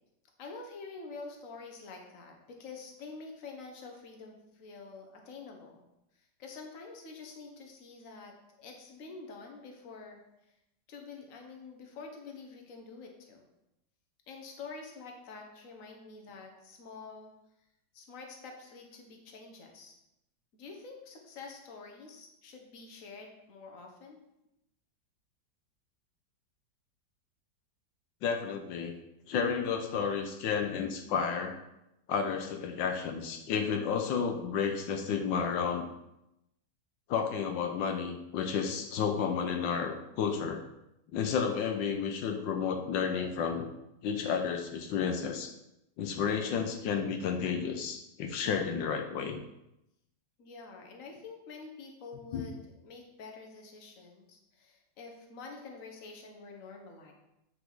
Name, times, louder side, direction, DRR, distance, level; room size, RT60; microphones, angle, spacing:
voice 1, 0.4-5.8 6.1-10.2 10.5-10.6 10.9-13.4 14.3-17.3 17.9-19.9 20.5-24.2 50.4-57.1, left 4 dB, 50° left, 2 dB, 1.4 m, -47 dB
voice 2, 28.2-29.0 29.3-31.6 32.1-35.9 37.1-40.6 41.1-43.7 44.0-45.5 46.0-49.4 52.3-52.4, left 6 dB, 85° left, 5 dB, 1.5 m, -31 dB
9.3 x 5.0 x 3.9 m, 0.87 s
omnidirectional pair, 1.9 m